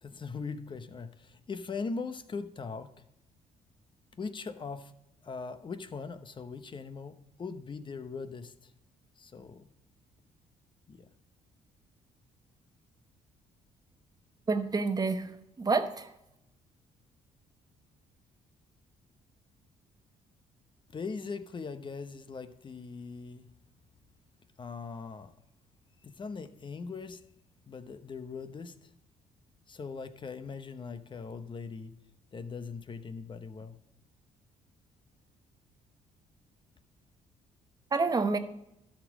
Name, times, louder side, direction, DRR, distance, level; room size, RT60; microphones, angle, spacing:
voice 1, 0.0-2.9 4.1-4.9 5.2-8.7 9.2-9.7 10.9-11.1 20.9-23.5 24.6-25.3 26.0-27.2 27.7-28.9 29.7-32.0 32.3-33.8, left 4 dB, 35° left, 11 dB, 0.9 m, -40 dB
voice 2, 14.5-15.3 15.6-16.1 37.9-38.4, right 4 dB, 25° right, 9 dB, 1.0 m, -28 dB
12.5 x 5.2 x 7.3 m, 0.85 s
cardioid pair, 85°, 14 cm